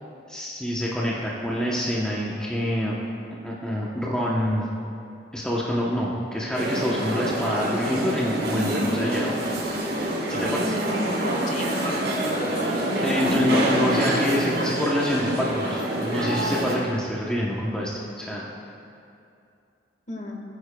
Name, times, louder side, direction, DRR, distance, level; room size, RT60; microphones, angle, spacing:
voice 1, 0.3-2.9 3.4-4.7 5.3-9.3 10.3-10.8 13.0-18.4, equal, 5° left, -5 dB, 0.8 m, -26 dB
sound 1, 6.5-16.7, right 1 dB, 70° right, 2.3 m, -26 dB
voice 2, 10.9-12.7 20.1-20.4, left 1 dB, 40° left, 0 dB, 1.5 m, -34 dB
19.0 x 9.7 x 2.2 m, 2.6 s
head